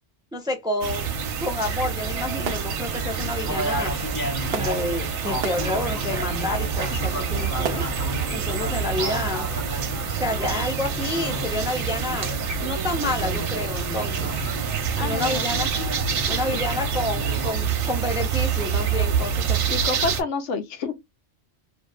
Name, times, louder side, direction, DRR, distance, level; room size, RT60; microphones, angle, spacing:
voice 1, 0.3-1.1 1.4-3.9 4.4-7.8 8.3-9.5 10.2-12.3 12.6-14.4 15.0-15.7 16.3-19.6, left 2 dB, 5° right, 0.3 m, -29 dB
sound 1, 0.8-20.2, right 7 dB, 90° right, 1.0 m, -27 dB
sound 2, 2.0-17.5, equal, 20° left, 1.0 m, -33 dB
sound 3, 2.4-8.1, right 7 dB, 65° right, 0.8 m, -38 dB
voice 2, 15.0-15.5 19.7-20.9, left 4 dB, 90° left, 1.0 m, -28 dB
2.6 x 2.5 x 2.3 m
omnidirectional pair, 1.2 m